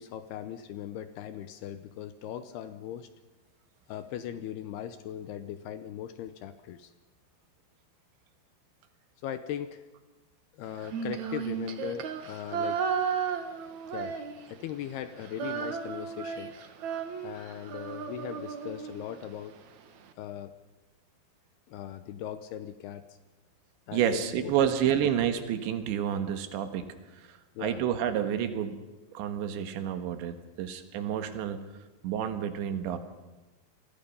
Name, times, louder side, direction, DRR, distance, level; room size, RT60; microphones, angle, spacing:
voice 1, 0.0-3.1 3.9-6.9 9.2-9.8 10.6-12.8 13.9-14.2 14.5-16.5 17.2-19.6 20.2-20.5 21.7-23.1 23.9-24.5 25.0-25.1 27.6-27.8, left 10 dB, 75° left, 11 dB, 2.5 m, -39 dB
Female singing, 10.8-14.7 15.0-19.3, right 6 dB, 60° right, 2.1 m, -34 dB
voice 2, 23.9-26.9 27.2-28.8 29.2-31.6 32.0-33.0, right 9 dB, 75° right, 9 dB, 3.7 m, -29 dB
28.0 x 20.5 x 5.5 m, 1.1 s
omnidirectional pair, 5.3 m